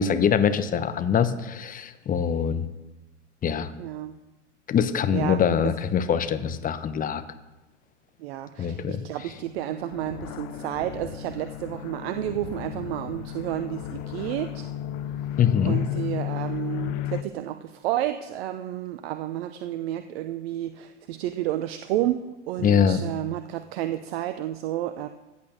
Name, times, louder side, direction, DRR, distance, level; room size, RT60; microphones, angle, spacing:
voice 1, 0.0-2.7 3.4-3.7 4.7-7.2 8.6-9.0 15.4-15.8 22.6-23.0, left 7 dB, 20° left, 11 dB, 1.0 m, -23 dB
voice 2, 3.8-4.2 5.1-5.7 8.2-14.7 15.6-25.1, right 13 dB, 55° right, 10 dB, 0.8 m, -31 dB
sound 1, 9.4-17.2, left 12 dB, 45° left, 0.8 m, -34 dB
15.0 x 8.5 x 6.6 m, 1.1 s
hypercardioid pair, 95°, 37 cm